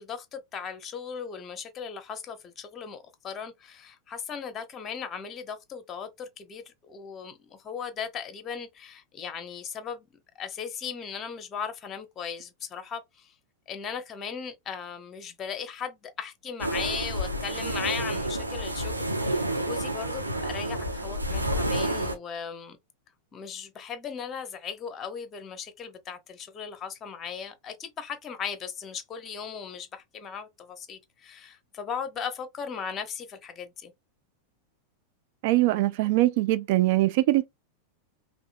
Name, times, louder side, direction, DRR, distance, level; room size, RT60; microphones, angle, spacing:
voice 1, 0.0-10.1 10.3-13.3 13.7-22.8 23.3-33.9, left 7 dB, 25° left, 1.0 m, -37 dB
sound 1, 16.6-22.1, right 1 dB, 85° right, 0.9 m, -29 dB
voice 2, 35.4-37.5, right 17 dB, 50° right, 0.3 m, -22 dB
5.4 x 2.7 x 2.3 m
figure-of-eight pair, 90°, 0 cm